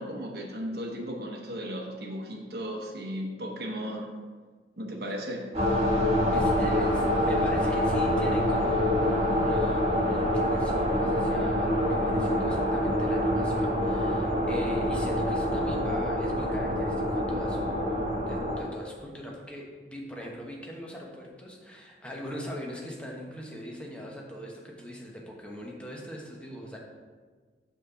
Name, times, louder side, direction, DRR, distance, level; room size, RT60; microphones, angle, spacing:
voice 1, 0.0-4.1 4.8-5.4, equal, 60° right, 0 dB, 0.9 m, -35 dB
sound 1, 5.5-18.6, left 1 dB, 35° right, 1.8 m, -26 dB
voice 2, 6.3-26.8, equal, 5° left, -2 dB, 1.0 m, -40 dB
6.3 x 3.9 x 5.6 m, 1.5 s
head